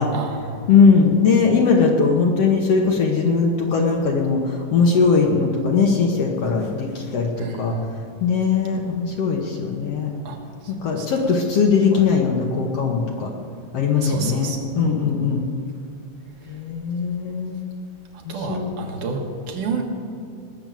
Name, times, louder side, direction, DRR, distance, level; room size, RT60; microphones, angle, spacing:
voice 1, 0.1-0.5 7.4-7.9 10.2-10.4 10.6-11.1 11.9-12.1 14.0-14.8 18.1-19.8, right 3 dB, 75° right, 1 dB, 3.0 m, -30 dB
voice 2, 0.7-7.8 8.2-10.1 10.7-13.3 13.7-15.5 16.5-17.6 18.3-18.7, left 5 dB, 60° left, 1 dB, 1.8 m, -20 dB
19.5 x 6.9 x 7.6 m, 2.5 s
omnidirectional pair, 3.8 m